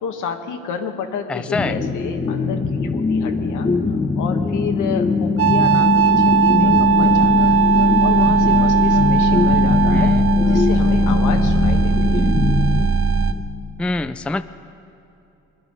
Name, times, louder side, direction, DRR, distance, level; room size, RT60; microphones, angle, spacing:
voice 1, 0.0-3.7 4.1-7.6 8.0-10.2 10.5-12.3, left 7 dB, 80° left, 5 dB, 1.4 m, -30 dB
voice 2, 1.3-1.8 9.9-10.3 13.8-14.4, left 2 dB, 5° left, 12 dB, 0.4 m, -25 dB
sound 1, 1.5-13.4, left 3 dB, 25° left, 1.2 m, -24 dB
sound 2, 3.6-13.7, left 4 dB, 65° left, 1.5 m, -21 dB
sound 3, 5.4-13.3, right 9 dB, 45° right, 0.6 m, -18 dB
22.0 x 10.5 x 5.4 m, 2.9 s
cardioid pair, 90°, 30 cm